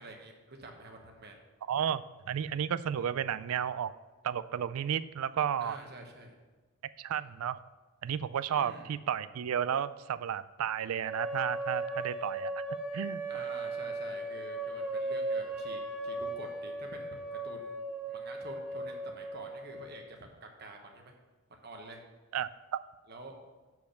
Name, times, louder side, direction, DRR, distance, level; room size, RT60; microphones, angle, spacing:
voice 1, 0.0-1.4 5.6-6.3 8.5-8.9 13.3-21.1 21.5-22.0 23.1-23.4, right 2 dB, 50° right, 3 dB, 1.1 m, -48 dB
voice 2, 1.7-3.9 4.2-5.8 7.0-7.6 8.0-12.6 12.9-13.4 22.3-22.5, right 8 dB, 75° right, 15 dB, 0.3 m, -32 dB
sound 1, 11.0-20.0, right 2 dB, 5° right, 0.7 m, -37 dB
7.3 x 4.7 x 6.4 m, 1.2 s
head